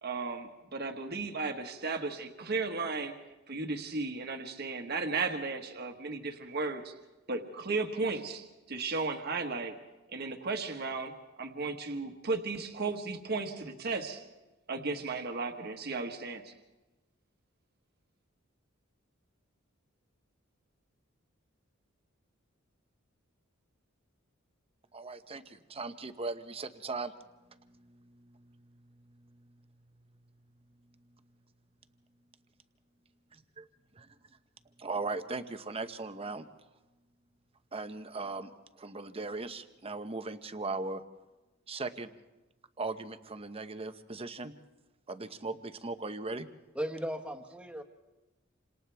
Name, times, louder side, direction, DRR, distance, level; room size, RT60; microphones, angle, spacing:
voice 1, 0.0-3.1 3.5-6.9 7.3-9.8 10.1-11.1 11.4-14.2 14.7-16.5, right 3 dB, 55° right, 5 dB, 1.5 m, -35 dB
voice 2, 24.9-27.1 27.6-29.6 34.0-34.1 34.8-36.4 37.7-38.5 38.8-41.0 41.7-42.1 42.8-44.5 45.1-46.5, right 3 dB, 30° right, 9 dB, 0.9 m, -39 dB
voice 3, 46.7-47.8, equal, 5° right, 3 dB, 1.5 m, -36 dB
28.5 x 26.5 x 3.5 m, 1.1 s
head